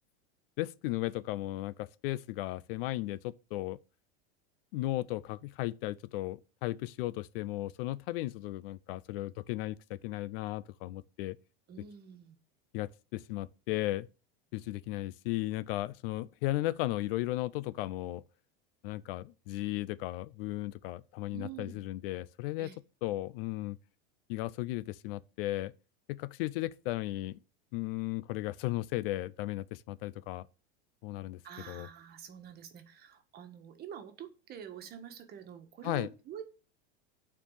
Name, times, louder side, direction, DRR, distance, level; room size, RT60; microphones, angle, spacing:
voice 1, 0.6-3.8 4.7-11.4 12.7-14.1 14.5-18.2 18.8-22.7 23.0-23.8 24.3-25.7 26.1-27.4 27.7-30.5 31.0-31.4 31.7-31.9 35.8-36.1, left 17 dB, 60° left, 0.5 m, -35 dB
voice 2, 11.7-12.4 21.3-21.8 22.6-22.8 31.4-36.5, right 9 dB, 30° right, 1.5 m, -47 dB
9.7 x 4.6 x 7.2 m
supercardioid pair, 150°, 32 cm